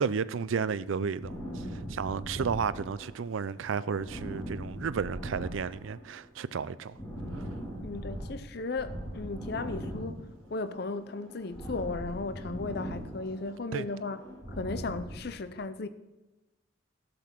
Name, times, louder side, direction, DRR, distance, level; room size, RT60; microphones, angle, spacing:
voice 1, 0.0-7.0 7.3-7.4 13.7-13.9, right 6 dB, 75° right, 0.4 m, -32 dB
sound 1, 1.2-3.3 3.6-6.1 6.4-8.3 8.7-10.7 10.9-13.5 13.8-15.2, equal, 15° left, 2.6 m, -40 dB
voice 2, 7.8-14.2 14.5-15.9, left 3 dB, 50° left, 0.6 m, -36 dB
12.0 x 6.8 x 5.8 m
head